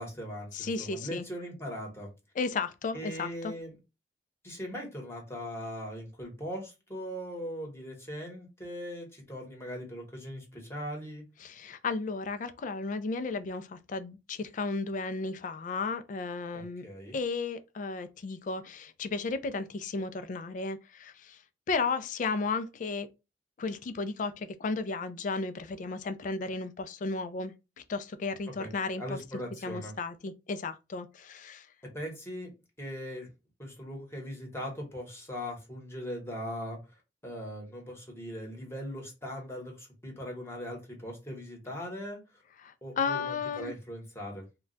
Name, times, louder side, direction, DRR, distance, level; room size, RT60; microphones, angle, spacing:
voice 1, 0.0-2.1 2.9-3.8 4.4-11.2 16.5-17.2 28.6-28.7 29.0-29.9 31.9-32.5 32.8-33.3 33.6-36.8 37.2-42.4 42.8-44.4, equal, 15° left, 1.0 m, -40 dB
voice 2, 0.5-1.2 2.4-3.5 11.4-16.8 17.1-21.4 21.7-23.1 23.6-27.5 27.9-29.2 29.6-31.7 42.6-43.7, left 4 dB, 45° left, 0.3 m, -34 dB
2.3 x 2.1 x 3.8 m
head